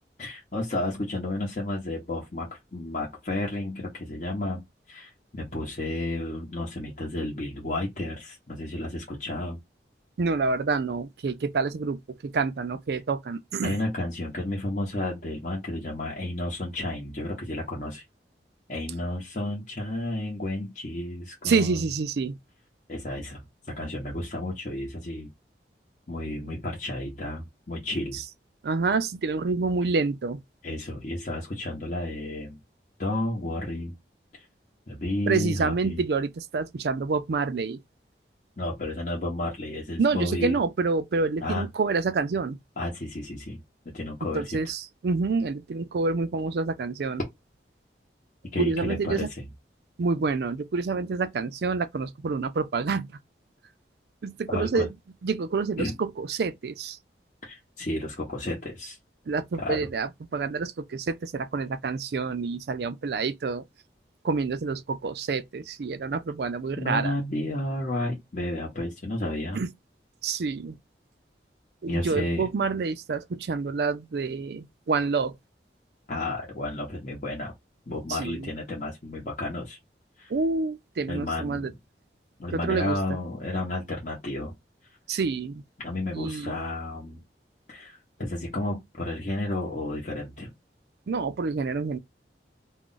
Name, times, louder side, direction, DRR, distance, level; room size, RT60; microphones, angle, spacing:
voice 1, 0.2-9.6 13.6-18.0 18.7-21.8 22.9-25.3 26.1-28.2 30.6-32.6 33.0-34.0 34.9-36.0 38.6-40.6 41.4-41.7 42.8-44.6 48.5-49.4 54.5-54.9 55.8-55.9 57.4-59.0 59.6-59.8 66.8-69.6 71.9-72.5 76.1-77.5 77.9-79.8 80.2-80.3 81.1-81.8 82.4-84.6 85.8-87.2 87.7-90.5, left 1 dB, 45° left, 0.8 m, -32 dB
voice 2, 10.2-13.8 21.4-22.4 28.1-28.2 28.6-30.4 35.3-37.8 40.0-42.6 44.3-47.2 48.6-49.3 50.0-53.1 54.2-54.9 55.2-57.0 59.3-63.6 64.2-67.1 69.5-69.7 70.2-70.8 71.8-75.4 78.1-78.5 80.3-81.7 82.5-83.2 85.1-85.6 86.1-86.6 91.1-92.0, right 4 dB, 65° right, 0.4 m, -28 dB
2.4 x 2.1 x 3.8 m
head